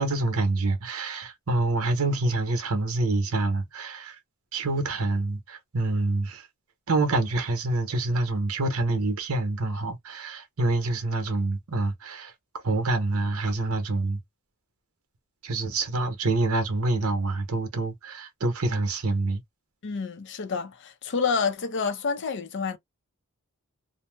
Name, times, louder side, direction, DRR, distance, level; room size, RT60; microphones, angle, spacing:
voice 1, 0.0-4.2 4.5-6.4 6.9-12.3 12.6-14.2 15.4-19.4, right 2 dB, 70° right, 0.8 m, -26 dB
voice 2, 19.8-22.8, left 5 dB, 55° left, 0.5 m, -28 dB
2.7 x 2.0 x 3.2 m
head